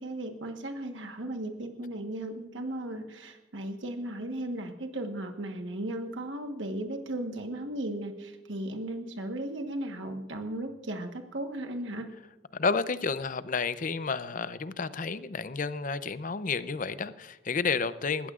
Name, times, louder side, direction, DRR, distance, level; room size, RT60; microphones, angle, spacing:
voice 1, 0.0-12.1, right 1 dB, 75° right, 5 dB, 1.3 m, -36 dB
voice 2, 12.5-18.3, left 4 dB, 45° left, 14 dB, 0.6 m, -31 dB
20.5 x 15.5 x 2.5 m, 1.1 s
head